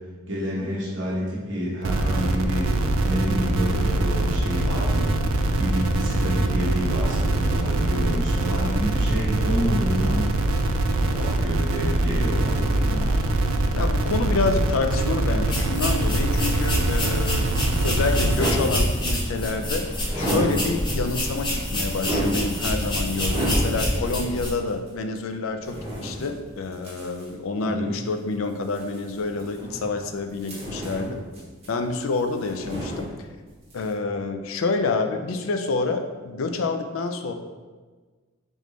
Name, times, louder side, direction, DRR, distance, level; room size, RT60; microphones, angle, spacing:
voice 1, 0.3-5.1 5.6-10.3 10.9-13.2 27.6-28.0, equal, 60° right, -6 dB, 1.0 m, -29 dB
sound 1, 1.8-18.4, right 2 dB, 85° right, 0.4 m, -23 dB
voice 2, 13.7-31.2 31.7-33.1 33.7-37.3, left 3 dB, 80° left, 6 dB, 0.4 m, -28 dB
sound 2, 15.5-24.5, equal, 20° left, 0.8 m, -27 dB
sound 3, 18.0-19.4 20.0-21.1 21.5-24.1 24.7-24.8 25.6-27.3 28.6-30.0 30.4-33.4 33.7-33.9, right 1 dB, 30° right, 1.1 m, -31 dB
3.8 x 3.6 x 3.2 m, 1.4 s
head